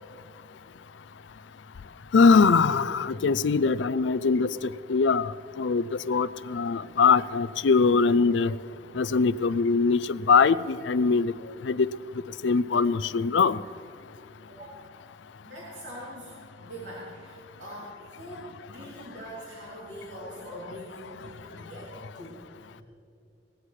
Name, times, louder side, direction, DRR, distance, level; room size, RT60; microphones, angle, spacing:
voice 1, 2.1-8.6 8.9-11.3 11.6-11.9 12.4-13.6, left 5 dB, 80° left, 16 dB, 0.4 m, -22 dB
voice 2, 14.5-14.9 15.4-16.3 16.6-22.4 22.6-22.8, equal, 85° right, -6 dB, 3.0 m, -43 dB
18.5 x 16.0 x 3.2 m, 2.6 s
head